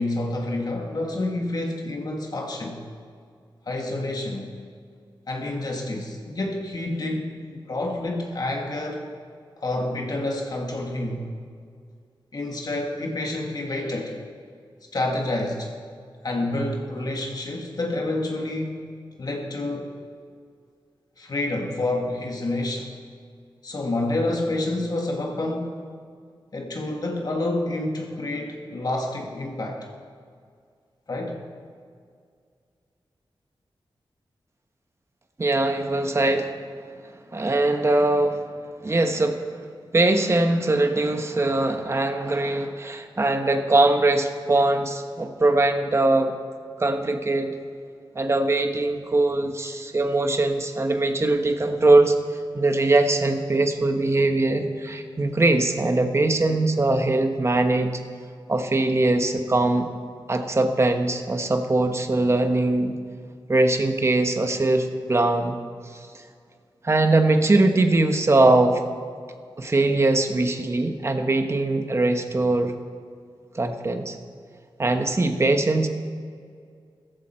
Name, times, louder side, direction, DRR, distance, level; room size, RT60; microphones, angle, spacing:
voice 1, 0.0-2.8 3.6-4.5 5.3-9.0 9.6-11.2 12.3-14.2 14.9-15.7 16.2-18.9 19.2-19.9 21.2-22.9 23.6-25.7 26.5-29.9 31.1-31.4, left 2 dB, 50° left, 1 dB, 1.6 m, -28 dB
voice 2, 35.4-36.5 37.3-38.5 38.8-39.4 39.9-46.3 46.8-47.5 48.1-52.2 52.5-57.9 58.5-59.9 60.3-62.9 63.5-65.6 66.8-68.8 69.6-72.7 73.5-74.2 74.8-75.9, right 2 dB, 30° right, 6 dB, 1.1 m, -21 dB
16.0 x 14.5 x 4.4 m, 2.2 s
wide cardioid pair, 120°, 9 cm